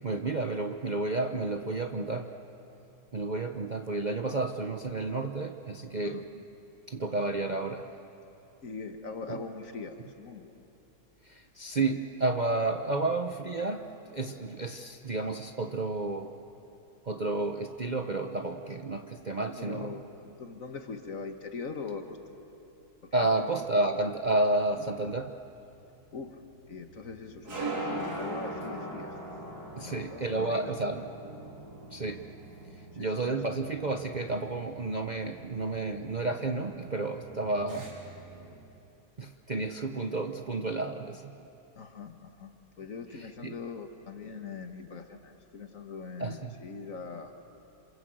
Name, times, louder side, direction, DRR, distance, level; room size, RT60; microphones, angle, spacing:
voice 1, 0.0-2.3 3.1-6.4 6.9-7.9 9.3-9.4 11.2-16.3 17.0-19.9 23.1-25.3 29.8-31.1 31.9-32.2 33.0-37.9 39.2-41.3 43.2-43.5 46.2-46.6, right 2 dB, 35° right, 4 dB, 0.8 m, -31 dB
voice 2, 8.6-10.5 19.6-22.2 23.0-23.5 24.8-25.1 26.1-26.4 26.7-29.1 29.8-31.1 32.9-33.3 41.8-47.3, left 4 dB, 55° left, 6 dB, 1.9 m, -42 dB
sound 1, 25.3-38.5, right 2 dB, 80° right, 4.5 m, -42 dB
27.5 x 27.0 x 7.9 m, 2.9 s
omnidirectional pair, 1.7 m